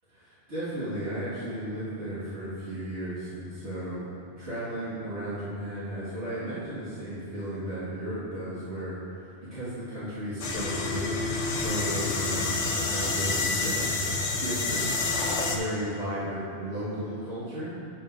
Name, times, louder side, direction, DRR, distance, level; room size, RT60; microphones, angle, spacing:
voice 1, 0.1-4.1 4.4-9.0 9.2-14.0 14.4-14.9 15.4-17.7, right 1 dB, 80° right, -14 dB, 2.2 m, -34 dB
sound 1, 10.4-15.6, left 3 dB, 85° left, 1.2 m, -28 dB
11.5 x 6.7 x 2.6 m, 2.7 s
omnidirectional pair, 1.1 m